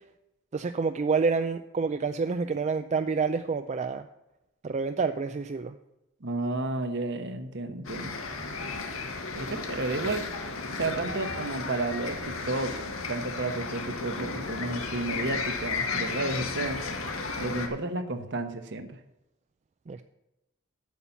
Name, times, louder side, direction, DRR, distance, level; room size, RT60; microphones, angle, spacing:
voice 1, 0.5-4.1 4.6-5.7 8.4-8.8 19.9-20.0, right 4 dB, 35° right, 9 dB, 0.4 m, -28 dB
voice 2, 6.2-8.2 9.3-10.3 10.7-12.7 13.1-16.9 17.4-19.0, right 2 dB, 60° right, 8 dB, 1.1 m, -32 dB
sound 1, 7.8-17.7, left 4 dB, 90° left, 1.6 m, -34 dB
8.4 x 7.4 x 6.9 m, 0.94 s
head